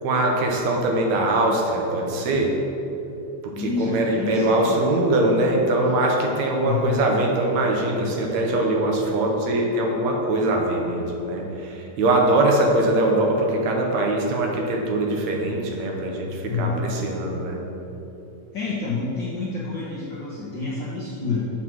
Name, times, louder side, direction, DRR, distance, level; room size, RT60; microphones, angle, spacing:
voice 1, 0.0-2.6 3.4-17.6, right 2 dB, 70° right, 0 dB, 2.3 m, -22 dB
voice 2, 3.5-4.8 6.6-7.0 16.5-16.8 18.5-21.5, left 4 dB, 55° left, -7 dB, 1.3 m, -28 dB
7.7 x 6.2 x 6.1 m, 2.9 s
omnidirectional pair, 3.5 m